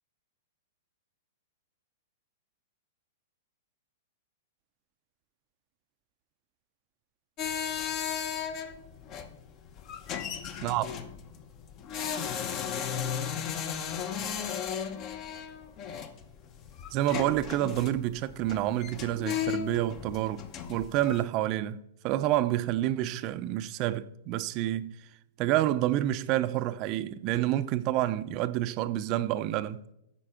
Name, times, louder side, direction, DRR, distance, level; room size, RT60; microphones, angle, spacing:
sound 1, 7.4-21.2, left 8 dB, 35° left, 0.9 m, -35 dB
voice 1, 16.9-20.4 20.7-21.8 22.0-24.9 25.4-29.8, right 14 dB, 35° right, 0.6 m, -28 dB
11.5 x 4.6 x 5.8 m
hypercardioid pair, 140°, 0 cm